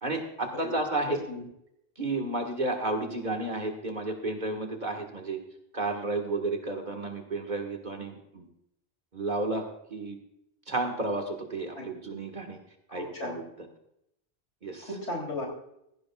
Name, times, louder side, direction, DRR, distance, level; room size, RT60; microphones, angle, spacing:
voice 1, 0.0-1.2 2.0-5.4 5.7-8.5 9.1-10.2 10.7-12.6 12.9-13.4 14.6-14.9, right 2 dB, 45° right, 3 dB, 1.8 m, -32 dB
voice 2, 1.1-1.5 11.8-11.9 12.9-13.4 14.8-15.5, left 2 dB, 85° left, 0 dB, 3.8 m, -36 dB
17.0 x 15.0 x 2.4 m, 0.78 s
omnidirectional pair, 1.1 m